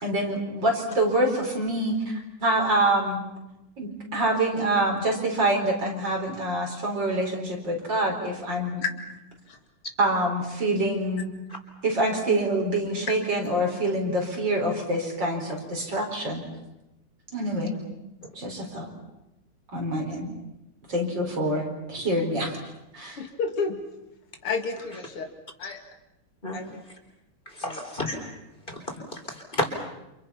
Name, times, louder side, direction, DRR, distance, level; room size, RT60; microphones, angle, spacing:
voice 1, 0.0-2.0 2.4-3.2 3.8-8.8 10.0-11.3 11.8-16.4 17.3-17.8 18.4-18.9 19.7-20.3 20.9-22.6 22.9-23.2, right 1 dB, 55° right, 1 dB, 5.3 m, -26 dB
voice 2, 23.2-23.8 24.4-25.3 25.6-25.8 26.5-26.8 27.6-27.8 29.0-29.1, left 5 dB, 85° left, 5 dB, 3.1 m, -31 dB
voice 3, 27.5-28.2 28.7-28.8 29.1-29.7, left 1 dB, 20° left, 3 dB, 4.2 m, -31 dB
30.0 x 28.0 x 5.8 m, 0.93 s
omnidirectional pair, 2.4 m